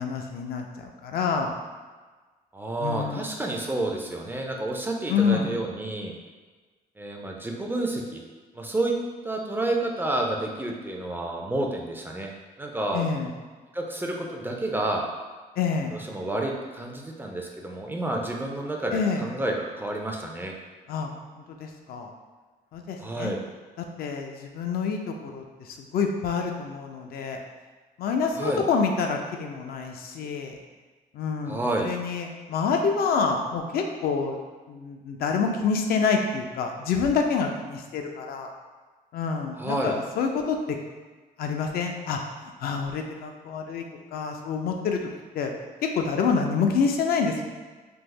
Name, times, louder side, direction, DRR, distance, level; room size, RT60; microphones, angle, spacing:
voice 1, 0.0-1.5 2.8-3.2 5.1-5.6 12.9-13.3 15.6-16.0 18.9-19.3 20.9-22.1 22.7-23.3 23.8-27.4 28.0-30.6 31.1-34.4 34.7-38.5 39.1-40.8 41.4-42.2 42.6-43.8 44.1-45.0 45.3-45.5 45.8-47.4, left 5 dB, 70° left, 3 dB, 0.4 m, -27 dB
voice 2, 2.5-6.1 7.0-8.2 8.5-8.9 9.2-12.3 12.6-13.0 13.7-15.0 15.9-20.5 23.0-23.4 28.4-28.6 31.5-31.9 39.6-40.0, right 2 dB, 15° right, 0 dB, 0.3 m, -29 dB
3.4 x 2.0 x 3.1 m, 1.4 s
cardioid pair, 115°, 16 cm